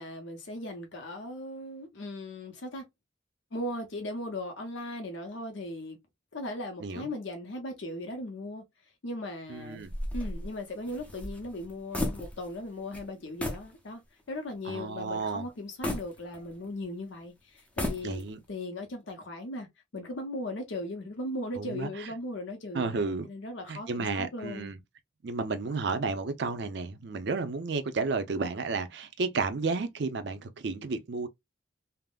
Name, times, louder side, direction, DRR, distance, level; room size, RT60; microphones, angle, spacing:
voice 1, 0.0-2.8 3.5-6.0 6.3-8.6 9.0-9.8 10.1-14.0 14.3-18.2 18.5-19.7 19.9-24.7, left 1 dB, 75° left, 0.7 m, -38 dB
voice 2, 6.8-7.1 9.5-9.9 14.6-15.4 18.0-18.4 21.6-22.1 22.7-23.3 23.7-24.8 25.2-31.3, right 4 dB, 60° right, 0.5 m, -32 dB
sound 1, 9.8-12.7 12.9-13.1 13.4-13.7 14.2-14.3 15.8-16.8 17.6-18.5, left 1 dB, 5° left, 0.5 m, -35 dB
3.5 x 2.0 x 2.2 m
head